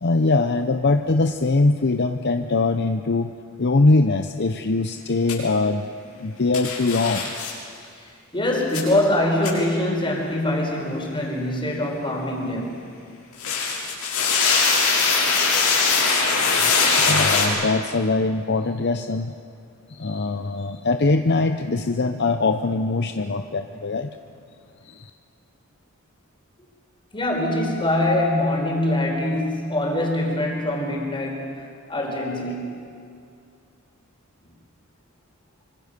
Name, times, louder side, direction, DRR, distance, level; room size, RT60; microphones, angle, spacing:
voice 1, 0.0-3.3 3.6-5.9 6.2-7.3 17.0-19.3 19.9-24.1 24.8-25.1, left 3 dB, 50° left, 8 dB, 0.8 m, -22 dB
sound 1, 5.3-5.4 6.5-7.5 8.7-8.8 9.4-9.5 13.3-17.4, left 4 dB, 90° left, 6.7 m, -21 dB
voice 2, 7.9-12.9 27.1-32.8, left 1 dB, 25° left, 0 dB, 4.9 m, -24 dB
25.5 x 25.0 x 6.8 m, 2.4 s
head